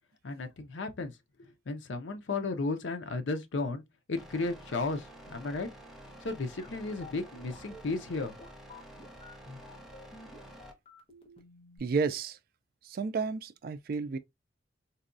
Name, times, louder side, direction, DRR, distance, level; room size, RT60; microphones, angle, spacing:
voice 1, 0.2-1.1 1.4-3.8 4.1-5.7 6.2-8.3, left 3 dB, 70° left, 0.6 m, -34 dB
sound 1, 4.2-10.7, right 1 dB, ahead, 0.6 m, -50 dB
sound 2, 6.6-11.8, left 1 dB, 30° left, 0.8 m, -51 dB
voice 2, 11.8-12.4 12.8-14.2, right 4 dB, 50° right, 0.3 m, -31 dB
4.0 x 2.2 x 2.5 m
head